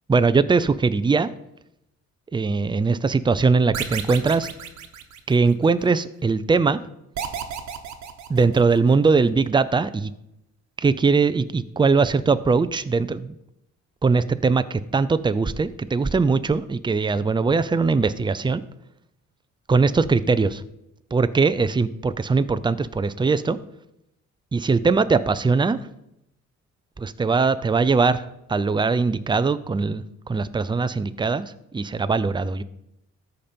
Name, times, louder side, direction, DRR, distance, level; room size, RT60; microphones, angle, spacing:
voice 1, 0.1-1.3 2.3-4.5 5.3-6.8 8.3-10.1 10.8-13.3 14.0-18.6 19.7-20.6 21.1-23.6 24.5-25.8 27.0-32.6, right 4 dB, 15° right, 13 dB, 0.5 m, -21 dB
sound 1, 3.7-5.7 7.2-9.0, right 8 dB, 65° right, 1.2 m, -33 dB
13.5 x 5.3 x 4.4 m, 0.82 s
cardioid pair, 90°, 30 cm